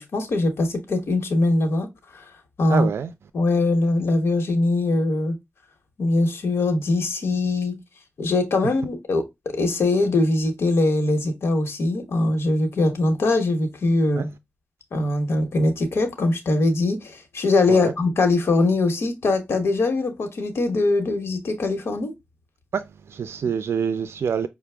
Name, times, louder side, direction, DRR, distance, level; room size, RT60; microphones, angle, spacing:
voice 1, 0.0-1.9 2.1-2.3 2.6-2.9 3.3-5.4 6.0-7.8 8.2-14.3 14.9-22.1, left 2 dB, 90° left, 1.0 m, -22 dB
voice 2, 2.7-3.1 8.6-8.7 14.2-14.3 17.7-17.9 22.7-24.5, right 7 dB, 90° right, 0.3 m, -26 dB
5.5 x 2.2 x 3.3 m
cardioid pair, 60°, 4 cm